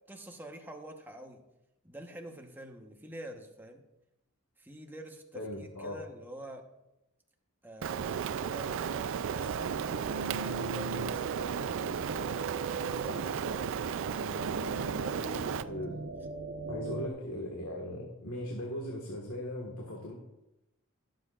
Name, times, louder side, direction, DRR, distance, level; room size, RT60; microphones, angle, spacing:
voice 1, 0.1-1.4 1.8-3.8 4.6-6.7 7.6-12.2 12.7-14.5 14.9-15.8 16.9-17.1, right 1 dB, 10° right, 3 dB, 1.1 m, -48 dB
voice 2, 5.3-6.0 15.7-16.0 16.7-20.1, left 1 dB, 85° left, -1 dB, 1.7 m, -38 dB
Rain, 7.8-15.6, right 7 dB, 60° right, 0.4 m, -34 dB
sound 1, 9.4-17.1, right 2 dB, 80° right, 1.0 m, -39 dB
20.0 x 7.5 x 2.5 m, 0.91 s
head